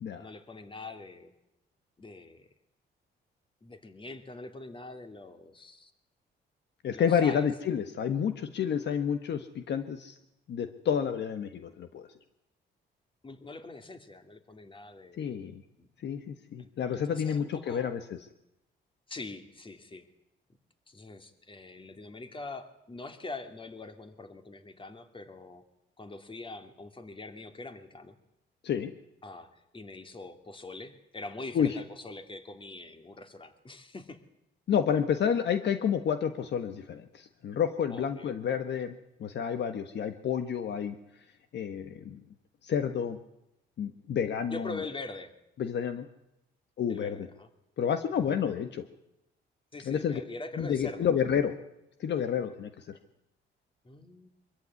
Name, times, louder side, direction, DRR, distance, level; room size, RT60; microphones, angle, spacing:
voice 1, 0.2-1.3 2.0-2.5 3.6-5.9 6.9-7.4 13.2-15.4 15.8-15.9 16.6-17.9 19.1-20.1 20.9-25.6 26.0-28.2 29.2-34.2 37.9-38.3 44.5-45.3 46.9-47.5 48.2-48.4 49.7-51.1 53.8-54.3, left 3 dB, 25° left, 7 dB, 2.7 m, -43 dB
voice 2, 6.8-10.2 10.5-12.1 15.2-15.6 16.0-18.0 28.6-28.9 31.5-31.8 34.7-38.9 39.2-41.0 41.5-42.2 42.6-43.2 43.8-44.8 45.6-46.1 46.8-47.3 47.8-48.9 49.8-50.2 50.6-51.5 52.0-53.0, left 8 dB, 60° left, 9 dB, 1.4 m, -29 dB
23.5 x 14.5 x 9.6 m, 0.87 s
cardioid pair, 90°, 20 cm